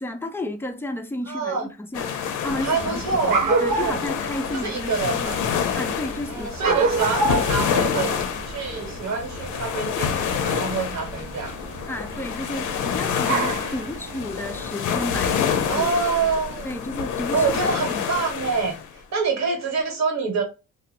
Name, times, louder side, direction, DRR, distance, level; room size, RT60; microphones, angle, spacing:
voice 1, 0.0-1.6 1.9-2.9 3.3-5.3 5.7-6.8 11.9-15.9 16.6-17.7, left 1 dB, 10° left, 0.3 m, -32 dB
voice 2, 1.3-1.7 2.6-4.1 4.5-5.4 6.3-11.5 15.7-16.7 17.3-20.4, right 4 dB, 65° right, 1.1 m, -26 dB
sound 1, 1.9-18.9, left 7 dB, 85° left, 0.5 m, -28 dB
sound 2, 2.4-14.7, right 3 dB, 85° right, 0.6 m, -30 dB
2.8 x 2.0 x 2.5 m
cardioid pair, 90°, 30 cm